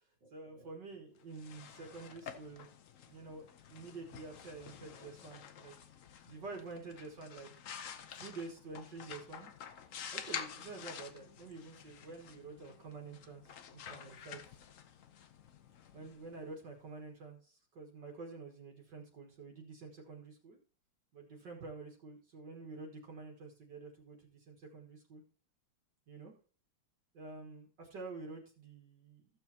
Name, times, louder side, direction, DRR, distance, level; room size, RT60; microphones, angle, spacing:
voice 1, 0.0-2.7 3.1-5.8 6.2-7.5 8.1-9.5 10.1-14.4 15.9-20.6 21.1-25.2 26.1-26.3 27.1-29.3, right 3 dB, 55° right, 1 dB, 2.2 m, -48 dB
sound 1, 1.2-16.9, left 8 dB, 75° left, 0.7 m, -49 dB
15.0 x 6.9 x 2.8 m, 0.38 s
omnidirectional pair, 2.4 m